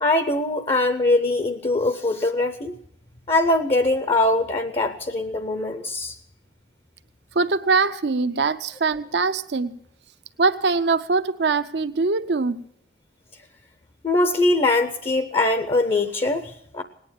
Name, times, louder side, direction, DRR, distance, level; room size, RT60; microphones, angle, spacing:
voice 1, 0.0-2.7 3.3-6.2 14.0-16.8, left 2 dB, 35° left, 9 dB, 0.6 m, -22 dB
voice 2, 7.3-9.8 10.4-12.6, right 4 dB, 70° right, 12 dB, 0.6 m, -22 dB
18.5 x 9.6 x 7.2 m, 0.73 s
head